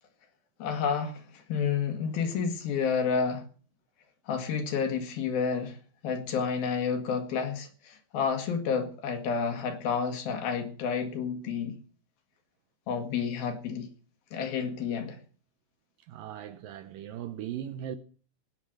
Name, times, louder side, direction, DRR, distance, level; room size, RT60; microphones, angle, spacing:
voice 1, 0.6-3.5 4.3-5.8 6.0-11.8 12.9-13.9 14.3-15.2, left 6 dB, 65° left, 3.7 m, -30 dB
voice 2, 16.1-18.0, right 10 dB, 75° right, 2.1 m, -38 dB
18.5 x 9.6 x 6.4 m
omnidirectional pair, 4.6 m